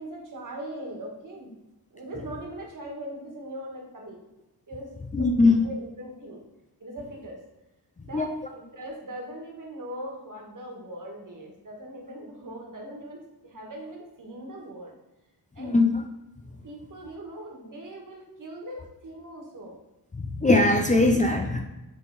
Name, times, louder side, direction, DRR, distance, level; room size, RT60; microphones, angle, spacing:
voice 1, 0.0-1.5 1.9-4.2 4.7-6.4 6.8-7.4 8.0-14.9 15.5-15.8 16.6-19.8, right 1 dB, 55° right, -1 dB, 1.7 m, -40 dB
voice 2, 5.1-5.6 8.1-8.3 15.6-16.0 20.3-21.6, left 2 dB, 20° left, 2 dB, 0.5 m, -20 dB
8.2 x 3.7 x 4.1 m, 1.0 s
wide cardioid pair, 145°, 39 cm